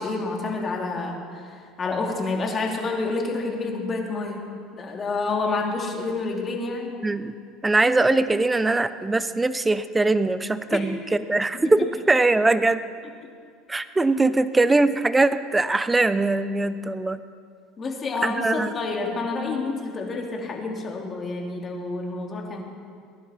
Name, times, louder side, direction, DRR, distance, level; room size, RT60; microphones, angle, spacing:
voice 1, 0.0-4.5 4.7-6.9 10.7-10.9 11.5-11.7 17.8-22.6, left 3 dB, 35° left, 0 dB, 2.9 m, -28 dB
voice 2, 7.0-7.3 7.6-11.0 11.3-11.8 12.1-12.9 13.7-17.2 18.2-18.7, right 2 dB, 15° right, 13 dB, 0.7 m, -21 dB
21.0 x 11.0 x 4.4 m, 2.2 s
hypercardioid pair, 90°, 0 cm